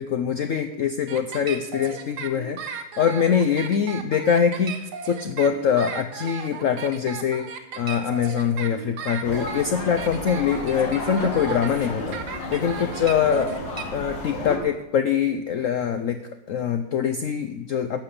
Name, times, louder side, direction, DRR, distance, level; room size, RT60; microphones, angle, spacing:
voice 1, 0.0-12.2 12.5-13.6 13.9-16.2 16.5-18.0, left 7 dB, 65° left, 9 dB, 0.8 m, -24 dB
sound 1, 1.1-13.8, right 7 dB, 65° right, 1.5 m, -35 dB
sound 2, 9.2-14.6, left 2 dB, 85° left, 2.5 m, -32 dB
12.0 x 5.5 x 8.5 m, 0.90 s
omnidirectional pair, 2.0 m